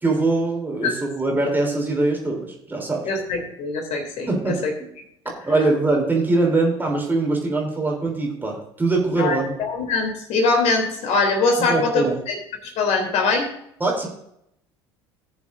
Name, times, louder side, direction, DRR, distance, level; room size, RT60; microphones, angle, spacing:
voice 1, 0.0-3.0 4.3-4.9 5.5-9.5 11.6-12.2 13.8-14.1, right 2 dB, 15° right, 0 dB, 3.3 m, -22 dB
voice 2, 3.1-4.7 9.2-12.4 12.6-13.5, left 3 dB, 50° left, 4 dB, 3.0 m, -22 dB
19.0 x 7.0 x 2.6 m, 0.75 s
figure-of-eight pair, 65°, 14 cm